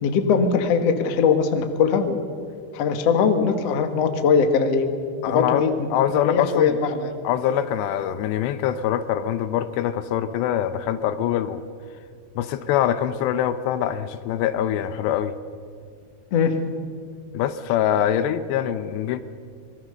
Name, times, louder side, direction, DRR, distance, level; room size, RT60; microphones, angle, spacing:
voice 1, 0.0-2.3 2.7-4.9 5.3-5.7 6.2-7.1 16.3-16.6, left 6 dB, 65° left, 6 dB, 1.6 m, -20 dB
voice 2, 5.2-5.7 5.9-6.8 7.2-11.6 12.4-15.3 17.3-19.2, left 10 dB, 80° left, 12 dB, 2.8 m, -24 dB
26.0 x 21.5 x 6.7 m, 2.2 s
omnidirectional pair, 5.3 m